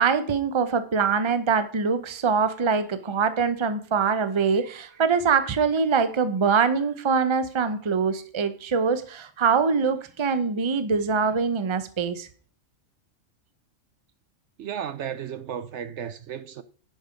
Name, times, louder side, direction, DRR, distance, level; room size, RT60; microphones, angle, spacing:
voice 1, 0.0-12.3, right 5 dB, 25° right, 0.7 m, -23 dB
voice 2, 14.6-16.6, right 8 dB, 70° right, 0.9 m, -34 dB
10.5 x 5.3 x 5.1 m
omnidirectional pair, 1.3 m